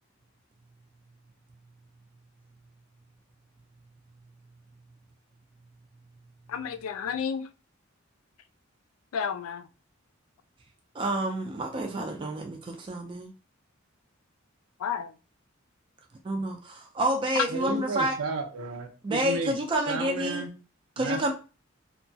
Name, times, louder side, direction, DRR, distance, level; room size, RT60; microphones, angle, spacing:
voice 1, 6.5-7.5 9.1-9.7 14.8-15.1 17.4-17.8, left 7 dB, 80° left, 12 dB, 0.3 m, -31 dB
voice 2, 10.9-13.3 16.2-18.1 19.0-20.4 21.0-21.3, right 1 dB, 25° right, 2 dB, 0.3 m, -29 dB
voice 3, 17.5-19.6 19.9-20.5 21.0-21.3, right 3 dB, 80° right, 3 dB, 0.5 m, -33 dB
2.8 x 2.2 x 2.6 m, 0.34 s
head